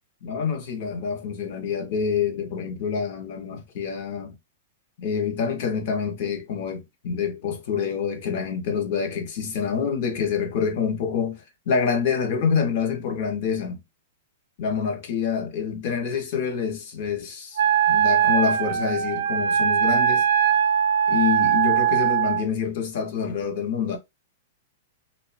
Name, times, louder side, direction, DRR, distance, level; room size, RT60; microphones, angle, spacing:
voice 1, 0.2-4.3 5.0-13.8 14.6-17.6 17.9-20.3 21.1-24.0, left 6 dB, 40° left, 0.6 m, -27 dB
Wind instrument woodwind instrument, 17.6-22.4, right 9 dB, 75° right, 0.4 m, -21 dB
2.9 x 2.1 x 2.3 m
supercardioid pair, 180°, 0 cm